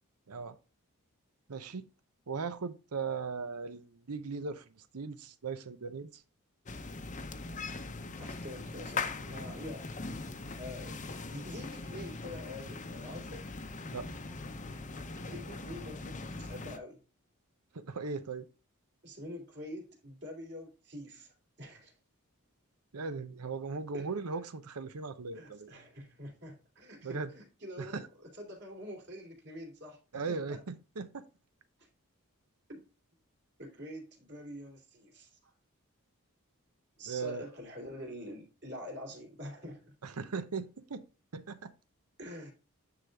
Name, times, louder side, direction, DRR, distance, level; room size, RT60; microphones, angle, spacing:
voice 1, 0.3-0.6 1.5-1.9 2.3-6.2 13.9-14.1 17.7-18.5 22.9-25.7 27.0-27.3 27.8-28.0 30.1-31.3 37.1-37.5 40.0-41.0 41.3-41.7, right 4 dB, 90° right, 0.8 m, -38 dB
sound 1, 6.7-16.8, left 3 dB, 35° left, 0.7 m, -41 dB
voice 2, 8.2-9.9 10.6-13.5 15.2-17.0 19.0-21.9 23.9-24.1 25.3-30.6 31.8-31.9 32.7-32.8 33.6-35.5 37.0-39.9 42.2-42.5, left 1 dB, 50° right, 2.8 m, -46 dB
9.6 x 3.9 x 3.5 m
head